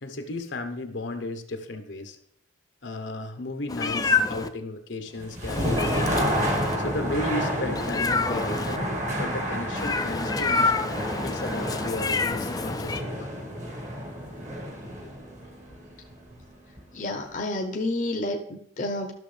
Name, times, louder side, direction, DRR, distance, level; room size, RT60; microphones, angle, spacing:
voice 1, 0.0-2.2 2.8-6.1 6.8-8.9 9.1-13.5 15.0-15.1, left 1 dB, 70° left, 6 dB, 1.0 m, -34 dB
Meow, 3.7-4.5 5.5-6.8 7.8-8.8 9.8-13.0, left 4 dB, 20° left, 0.4 m, -27 dB
sound 1, 5.1-17.0, equal, 40° right, 1.4 m, -30 dB
voice 2, 16.9-19.1, left 2 dB, 45° left, 2 dB, 0.8 m, -30 dB
12.5 x 6.4 x 3.3 m, 0.70 s
head